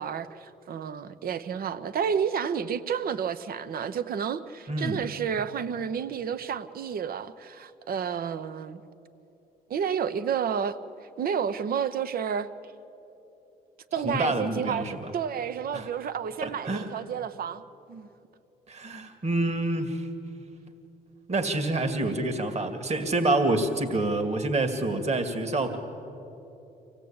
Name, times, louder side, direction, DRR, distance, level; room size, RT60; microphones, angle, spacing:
voice 1, 0.0-8.8 9.7-10.8 11.2-12.5 13.9-17.6 17.9-18.1, right 7 dB, 60° right, 13 dB, 0.9 m, -30 dB
voice 2, 4.7-5.0 14.0-15.1 15.7-15.9 16.4-16.9 18.7-20.1 21.3-25.8, right 2 dB, 40° right, 7 dB, 2.2 m, -27 dB
25.0 x 17.0 x 8.8 m, 3.0 s
cardioid pair, 80°, 17 cm